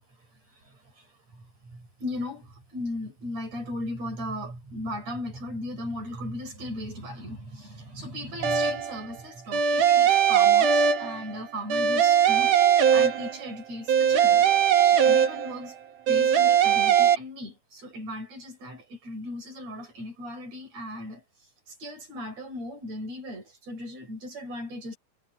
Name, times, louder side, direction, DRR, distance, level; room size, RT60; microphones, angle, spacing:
voice 1, 0.5-14.5 14.8-15.8 16.1-21.2 21.7-25.0, left 1 dB, 60° right, 7.3 m, -37 dB
sound 1, 8.4-9.0 9.5-11.4 11.7-13.5 13.9-15.7 16.1-17.1, right 8 dB, 90° right, 3.3 m, -20 dB
omnidirectional pair, 3.5 m